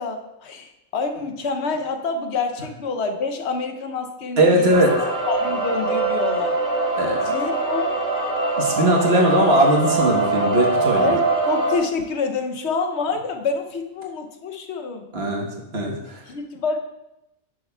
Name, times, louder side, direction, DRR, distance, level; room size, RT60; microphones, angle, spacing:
voice 1, 0.0-4.7 5.3-6.6 7.3-7.9 11.0-15.0 16.3-16.8, left 4 dB, 65° left, 5 dB, 1.0 m, -27 dB
voice 2, 4.4-4.9 7.0-7.3 8.6-11.2 15.1-16.2, right 1 dB, 55° right, -1 dB, 1.4 m, -19 dB
sound 1, 4.7-11.8, right 2 dB, 70° right, 1.8 m, -23 dB
10.5 x 6.6 x 2.2 m, 0.91 s
omnidirectional pair, 1.3 m